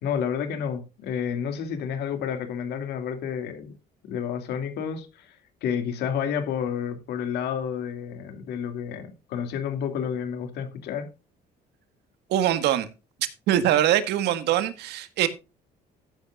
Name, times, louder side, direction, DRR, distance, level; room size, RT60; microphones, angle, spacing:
voice 1, 0.0-3.7 4.0-11.1, left 7 dB, 75° left, 2.5 m, -30 dB
voice 2, 12.3-12.9 13.5-15.3, right 11 dB, 80° right, 1.6 m, -23 dB
13.5 x 10.5 x 2.4 m
cardioid pair, 110°, 17 cm